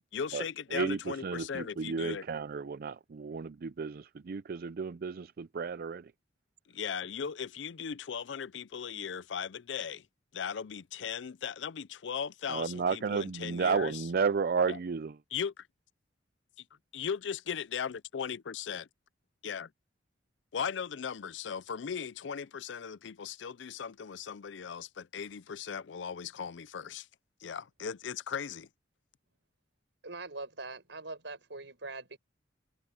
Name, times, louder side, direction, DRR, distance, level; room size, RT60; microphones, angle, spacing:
voice 1, 0.1-2.2 6.7-10.1 10.3-14.0 14.7-14.8 15.3-15.7 16.9-18.9 19.4-19.7 20.5-27.1 27.4-28.7, left 7 dB, 70° left, 0.5 m, -38 dB
voice 2, 0.7-6.1 12.5-15.2, right 5 dB, 50° right, 0.4 m, -32 dB
voice 3, 30.0-32.2, right 3 dB, 70° right, 6.1 m, -42 dB
head